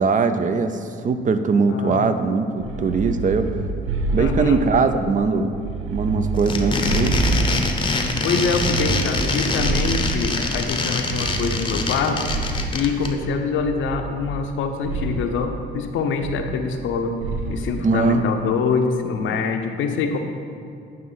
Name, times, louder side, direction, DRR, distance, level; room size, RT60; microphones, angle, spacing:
voice 1, 0.0-3.5 4.1-5.5 5.9-7.2 17.8-18.2, right 4 dB, 40° right, 9 dB, 0.5 m, -21 dB
voice 2, 1.7-2.1 4.2-4.6 8.2-12.3 12.7-17.2 17.5-20.2, left 5 dB, 80° left, 5 dB, 0.7 m, -24 dB
sound 1, 2.6-5.0 5.5-7.9 8.4-10.6 11.1-12.9 13.6-14.5 14.8-15.3 16.2-16.9 17.2-17.7, right 3 dB, 90° right, 0.5 m, -27 dB
sound 2, 6.3-13.1, left 3 dB, 25° left, 0.7 m, -24 dB
9.3 x 3.1 x 5.6 m, 2.5 s
cardioid pair, 90°, 20 cm